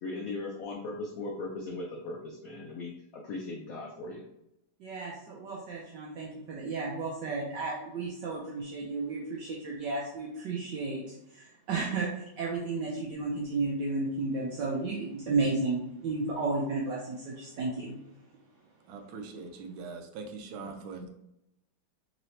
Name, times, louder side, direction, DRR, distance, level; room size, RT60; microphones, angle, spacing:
voice 1, 0.0-4.2, left 2 dB, 85° left, -1 dB, 0.7 m, -38 dB
voice 2, 4.8-18.0, right 3 dB, 70° right, -3 dB, 1.2 m, -33 dB
voice 3, 18.9-21.1, right 4 dB, 85° right, 5 dB, 1.4 m, -42 dB
3.8 x 3.1 x 2.7 m, 0.83 s
omnidirectional pair, 2.2 m